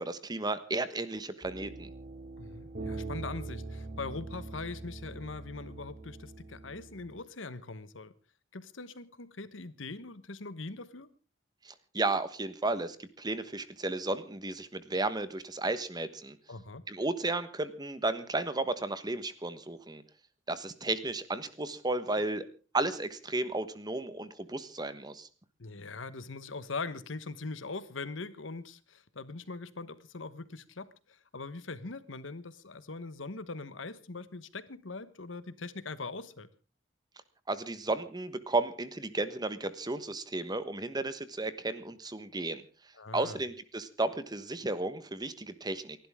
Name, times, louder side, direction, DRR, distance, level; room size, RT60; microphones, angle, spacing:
voice 1, 0.0-1.9 11.6-16.4 16.9-20.0 20.5-22.4 22.7-25.3 37.5-42.6 43.1-46.0, right 2 dB, 20° right, 1.3 m, -33 dB
sound 1, 1.4-7.2, right 2 dB, 45° right, 2.8 m, -43 dB
voice 2, 2.4-8.1 8.5-11.1 16.5-16.8 25.6-36.5 42.9-43.4, left 3 dB, 80° left, 1.2 m, -41 dB
29.0 x 12.0 x 3.7 m
head